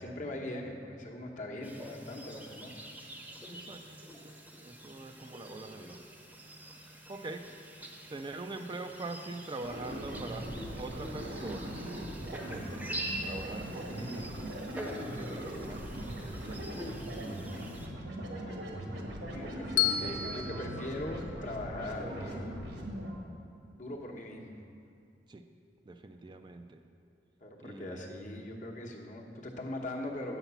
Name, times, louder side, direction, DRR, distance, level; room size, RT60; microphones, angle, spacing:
voice 1, 0.0-2.8 19.2-22.5 23.7-24.6 27.4-30.4, left 1 dB, 45° left, 0 dB, 1.0 m, -40 dB
sound 1, 1.6-17.9, right 1 dB, 10° right, 0.7 m, -45 dB
voice 2, 3.5-4.0 4.2-6.0 7.1-7.5 8.1-10.5 10.8-11.8 12.5-12.7 13.2-14.5 15.2-17.5 25.3-25.5 25.9-26.8 27.6-28.0, right 2 dB, 25° right, 6 dB, 0.4 m, -43 dB
sound 2, 9.6-23.1, equal, 75° right, 1.3 m, -40 dB
Bell, 19.8-22.0, left 10 dB, 90° left, 0.5 m, -33 dB
8.0 x 5.8 x 6.9 m, 2.4 s
head